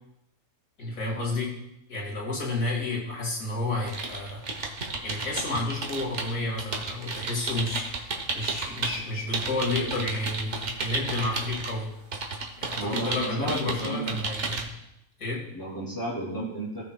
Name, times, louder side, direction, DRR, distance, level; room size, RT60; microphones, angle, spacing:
voice 1, 0.8-1.5 1.9-4.4 4.8-11.9 12.6-14.7 15.2-15.5, left 2 dB, 70° left, -3 dB, 2.5 m, -31 dB
sound 1, 3.8-9.0 9.3-11.7 12.1-14.6, right 3 dB, 55° right, 1.4 m, -33 dB
voice 2, 12.7-14.3 15.5-16.9, right 1 dB, 15° left, -7 dB, 2.8 m, -33 dB
16.5 x 6.1 x 2.3 m, 0.83 s
omnidirectional pair, 1.5 m